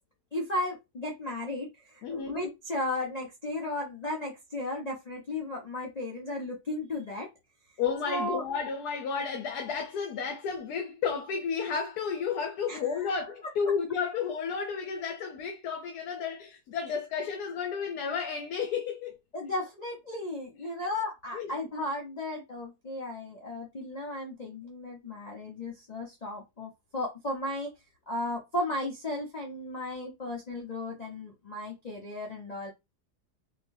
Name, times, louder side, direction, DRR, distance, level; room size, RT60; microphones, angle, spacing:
voice 1, 0.3-7.3 8.1-8.5 12.6-13.1 19.3-27.7 28.1-32.7, left 1 dB, 35° left, 0.6 m, -35 dB
voice 2, 2.0-2.4 7.8-19.2 21.3-21.5, left 6 dB, 75° left, 1.2 m, -32 dB
3.8 x 3.3 x 2.6 m
omnidirectional pair, 1.8 m